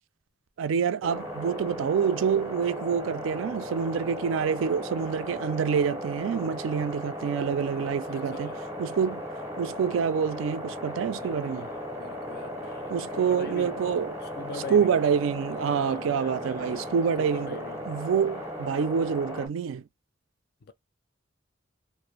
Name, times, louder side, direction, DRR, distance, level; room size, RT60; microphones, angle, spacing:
voice 1, 0.6-8.5 8.8-9.2 9.6-11.7 12.9-14.1 14.7-17.6 17.9-19.8, right 7 dB, 75° right, 0.3 m, -27 dB
sound 1, 1.0-19.5, equal, 15° right, 0.6 m, -36 dB
voice 2, 8.1-8.7 11.2-13.9 14.2-15.1 15.7-18.1 20.6-20.7, left 4 dB, 50° left, 0.4 m, -43 dB
2.5 x 2.0 x 3.0 m
head